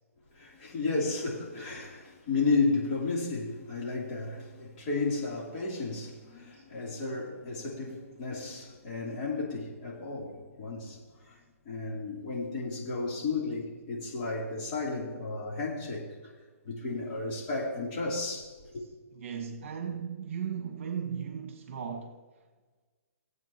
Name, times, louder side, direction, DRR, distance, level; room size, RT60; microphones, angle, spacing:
voice 1, 0.3-11.0 11.3-11.4 11.6-16.1 16.6-18.8, left 3 dB, 35° left, 3.2 m, -33 dB
voice 2, 19.1-22.2, right 7 dB, 55° right, 1.5 m, -36 dB
18.5 x 8.2 x 3.0 m
hypercardioid pair, 150°, 8 cm